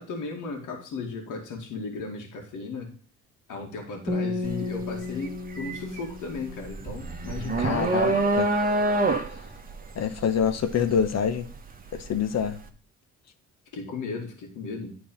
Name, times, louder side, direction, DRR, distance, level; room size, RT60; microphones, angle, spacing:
voice 1, 0.0-2.9 3.5-8.2 13.7-15.0, left 4 dB, 85° left, 1 dB, 2.2 m, -35 dB
sound 1, 4.1-7.3, left 3 dB, ahead, 1.9 m, -33 dB
sound 2, 4.4-4.7 5.1-12.1, right 2 dB, 30° right, 1.3 m, -26 dB
voice 2, 7.6-8.5 9.9-11.5 11.9-12.6, left 7 dB, 60° left, 10 dB, 1.2 m, -26 dB
10.5 x 4.1 x 5.2 m, 0.41 s
cardioid pair, 90°, 30 cm